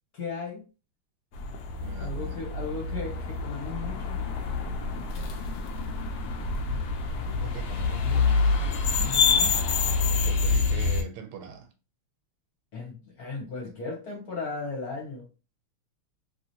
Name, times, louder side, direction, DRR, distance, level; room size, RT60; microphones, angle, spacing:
voice 1, 0.1-0.6 2.0-4.2 8.9-9.5 12.7-15.3, left 4 dB, 55° left, 1.1 m, -36 dB
sound 1, 1.3-11.0, left 4 dB, 85° left, 0.8 m, -27 dB
voice 2, 1.8-2.4 7.2-8.5 10.0-11.7, right 7 dB, 80° right, 1.5 m, -41 dB
3.0 x 2.9 x 2.7 m
omnidirectional pair, 2.4 m